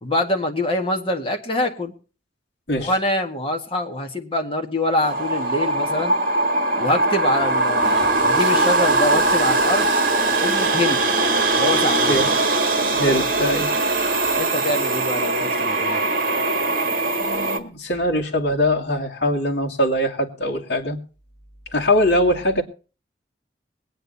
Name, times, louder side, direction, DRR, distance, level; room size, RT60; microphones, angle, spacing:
voice 1, 0.0-1.9 2.8-6.1 6.8-9.9 10.4-11.0 11.6-12.3 14.4-16.0, left 1 dB, 30° left, 3 dB, 1.8 m, -25 dB
sound 1, 5.0-17.6, right 2 dB, 50° right, 1.7 m, -21 dB
Toilet flush, 6.9-12.2, equal, 5° right, 4.2 m, -36 dB
voice 2, 12.9-13.7 17.2-21.0 21.7-22.6, equal, 60° left, -1 dB, 2.6 m, -22 dB
22.0 x 9.2 x 4.1 m, 0.35 s
head